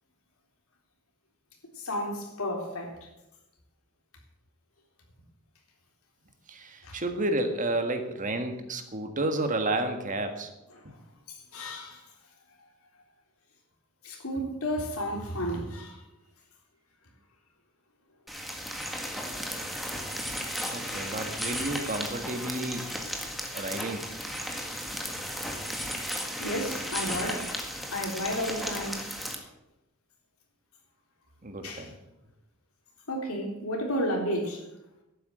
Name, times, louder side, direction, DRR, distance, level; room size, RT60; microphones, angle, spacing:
voice 1, 1.8-3.1 6.8-7.0 10.8-10.9 11.5-12.0 14.0-16.0 20.6-21.0 23.3-23.4 24.5-24.7 26.4-27.5 27.9-29.0 31.6-31.9 33.1-34.6, equal, 85° left, 3.7 m, -32 dB
voice 2, 6.5-10.5 20.7-22.9 23.5-24.1 31.4-31.9, right 2 dB, 35° right, 1.7 m, -31 dB
sound 1, 18.3-29.4, equal, ahead, 1.8 m, -35 dB
12.0 x 9.3 x 7.7 m
head